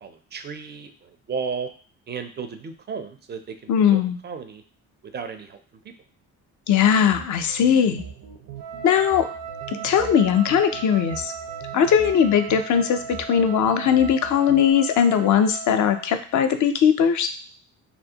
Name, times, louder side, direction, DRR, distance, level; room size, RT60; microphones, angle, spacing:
voice 1, 0.0-1.7 2.1-4.6 5.1-5.6 5.8-5.9, right 5 dB, 30° right, 8 dB, 0.4 m, -34 dB
voice 2, 3.7-4.2 6.7-8.0 8.8-9.3 9.8-11.3 11.7-17.3, left 8 dB, 50° left, 8 dB, 0.4 m, -19 dB
sound 1, 6.7-14.7, right 8 dB, 70° right, 0.6 m, -42 dB
Wind instrument woodwind instrument, 8.6-16.2, right 7 dB, 90° right, 1.0 m, -37 dB
2.5 x 2.1 x 2.8 m, 0.43 s
supercardioid pair, 55°, 38 cm